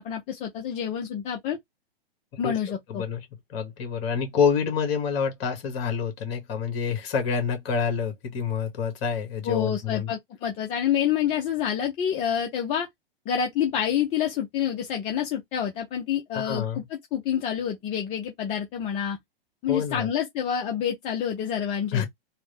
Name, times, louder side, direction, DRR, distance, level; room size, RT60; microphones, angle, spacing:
voice 1, 0.0-1.6 2.4-3.0 9.4-12.9 13.3-16.8 17.1-19.2 19.6-22.0, left 9 dB, 20° left, 0.5 m, -27 dB
voice 2, 2.9-3.2 3.5-10.1 16.3-16.8 19.7-20.1 21.9-22.0, left 6 dB, 35° left, 1.6 m, -27 dB
3.6 x 2.1 x 3.4 m
hypercardioid pair, 130°, 29 cm